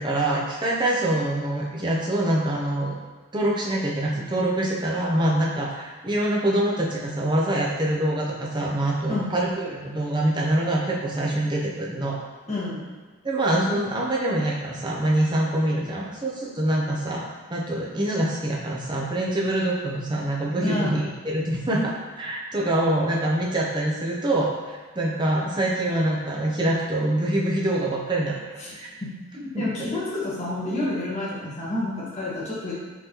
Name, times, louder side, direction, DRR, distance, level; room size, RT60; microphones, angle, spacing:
voice 1, 0.0-3.0 3.3-12.2 13.2-28.9 29.5-29.9, right 1 dB, 20° right, -3 dB, 0.6 m, -25 dB
voice 2, 12.5-12.9 20.6-21.0 28.6-28.8 29.3-32.7, left 2 dB, 30° left, -8 dB, 1.3 m, -29 dB
5.4 x 3.1 x 2.9 m, 1.3 s
head